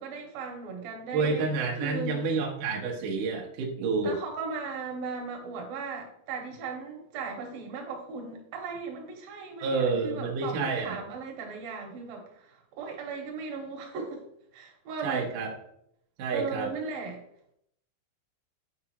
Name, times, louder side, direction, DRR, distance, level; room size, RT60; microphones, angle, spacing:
voice 1, 0.0-1.5 1.8-2.3 4.0-14.2 14.5-15.3 16.3-17.2, right 5 dB, 70° right, 1 dB, 2.4 m, -37 dB
voice 2, 1.1-4.1 9.6-11.0 15.0-15.5 16.2-16.7, right 4 dB, 85° right, 0 dB, 1.8 m, -29 dB
9.4 x 4.8 x 2.9 m, 0.73 s
omnidirectional pair, 5.3 m